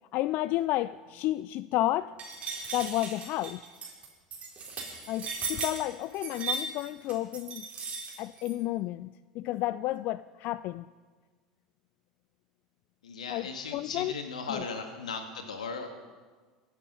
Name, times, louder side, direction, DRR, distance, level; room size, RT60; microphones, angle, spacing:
voice 1, 0.1-2.1 2.7-3.6 5.1-7.7 8.2-10.8 13.3-14.1 14.5-14.6, left 15 dB, 50° left, 0.3 m, -31 dB
sound 1, 2.2-8.5, right 4 dB, 35° right, 4.5 m, -37 dB
voice 2, 13.0-15.9, left 4 dB, 80° left, 2.0 m, -37 dB
23.5 x 8.4 x 5.7 m
hypercardioid pair, 80°, 4 cm